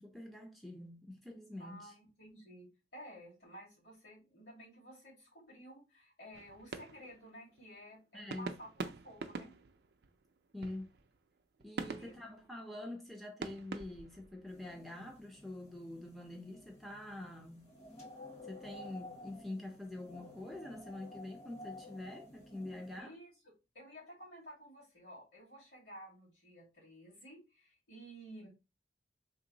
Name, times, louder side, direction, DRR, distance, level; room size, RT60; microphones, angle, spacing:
voice 1, 0.0-1.9 8.1-8.6 10.5-10.9 11.6-17.8 18.4-23.1, left 1 dB, ahead, 0.5 m, -46 dB
voice 2, 1.6-9.5 11.8-12.2 23.0-23.3 23.7-28.5, equal, 75° left, 2.2 m, -53 dB
sound 1, 6.3-7.9 8.3-13.1 13.4-15.0, right 4 dB, 65° right, 0.4 m, -45 dB
sound 2, 14.5-23.0, left 2 dB, 40° left, 0.9 m, -53 dB
3.8 x 2.0 x 3.7 m
head